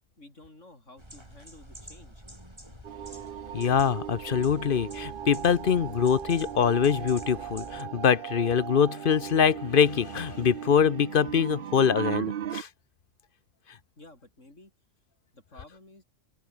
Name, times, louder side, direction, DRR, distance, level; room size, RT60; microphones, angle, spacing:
voice 1, 0.2-2.2 14.0-14.7 15.3-16.0, left 2 dB, 80° left, 6.6 m, -52 dB
sound 1, 1.0-7.8, right 1 dB, 20° right, 6.7 m, -48 dB
sound 2, 2.8-12.6, right 10 dB, 55° right, 0.7 m, -37 dB
voice 2, 3.5-12.7, left 7 dB, 50° left, 0.9 m, -24 dB
open air
omnidirectional pair, 1.3 m